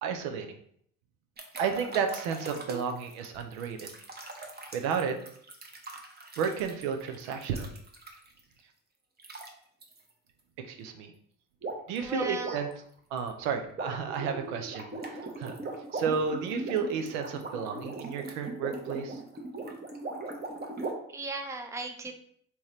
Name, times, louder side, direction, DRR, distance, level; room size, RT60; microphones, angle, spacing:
voice 1, 0.0-0.5 1.6-3.9 4.7-5.2 6.4-7.7 10.6-11.1 11.9-12.7 13.1-15.5 15.9-19.2, right 6 dB, 75° right, 5 dB, 0.6 m, -32 dB
sound 1, 1.4-8.4 9.2-9.5 9.8-10.0 11.6-12.0 12.3-20.9, right 3 dB, 25° right, 0.8 m, -40 dB
voice 2, 12.0-12.6 21.1-22.1, right 2 dB, 5° right, 4 dB, 0.5 m, -36 dB
3.5 x 2.9 x 3.1 m, 0.64 s
hypercardioid pair, 65°, 41 cm